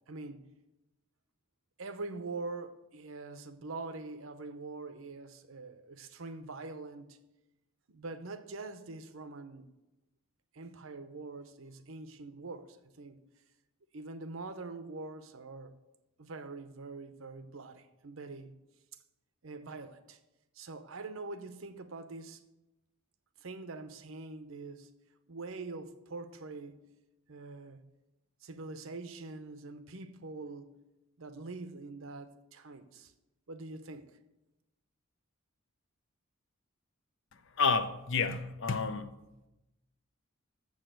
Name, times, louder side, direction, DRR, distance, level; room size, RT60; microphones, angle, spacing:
voice 1, 0.1-0.5 1.8-7.2 7.9-9.7 10.5-13.2 13.9-15.8 16.2-18.6 19.4-20.2 20.5-22.4 23.4-24.9 25.3-26.8 27.3-27.9 28.4-30.7 31.2-33.1 33.5-34.1, right 3 dB, 70° right, 0.7 m, -44 dB
voice 2, 37.6-39.1, left 4 dB, 60° left, 0.7 m, -29 dB
7.4 x 6.3 x 7.7 m
head